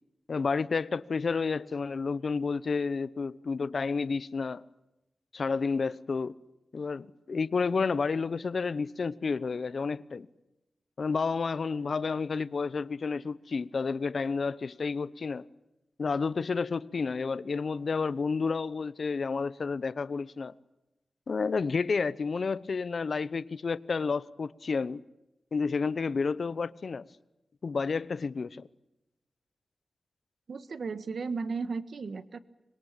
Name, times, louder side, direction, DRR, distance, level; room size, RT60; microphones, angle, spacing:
voice 1, 0.3-4.6 5.3-6.4 6.7-10.3 11.0-15.5 16.0-20.5 21.3-25.0 25.5-27.1 27.6-28.7, left 4 dB, 60° left, 0.8 m, -30 dB
voice 2, 30.5-32.4, right 4 dB, 70° right, 1.5 m, -35 dB
25.5 x 22.0 x 9.0 m
wide cardioid pair, 80°, 0 cm